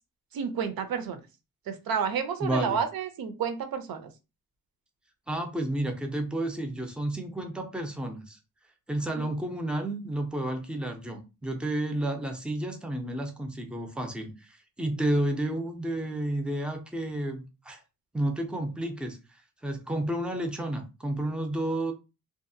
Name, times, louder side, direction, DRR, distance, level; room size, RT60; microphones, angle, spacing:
voice 1, 0.3-1.2 1.7-4.1 9.2-9.3, right 7 dB, 90° right, 0.6 m, -30 dB
voice 2, 2.4-2.8 5.3-8.4 8.9-17.8 18.1-21.9, right 1 dB, 5° right, 0.3 m, -31 dB
2.7 x 2.3 x 2.6 m
wide cardioid pair, 165°, 34 cm